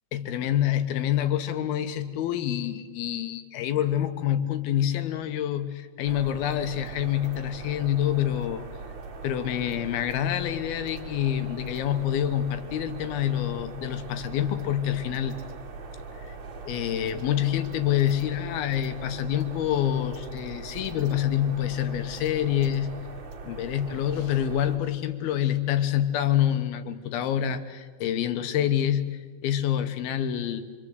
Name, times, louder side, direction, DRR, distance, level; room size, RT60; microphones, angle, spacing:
voice 1, 0.1-8.7 9.2-15.3 16.3-16.4 16.7-22.9 23.4-30.6, left 11 dB, 85° left, 9 dB, 3.1 m, -27 dB
sound 1, 6.0-24.8, right 4 dB, 45° right, 1.8 m, -41 dB
25.5 x 25.0 x 8.0 m, 1.5 s
omnidirectional pair, 4.2 m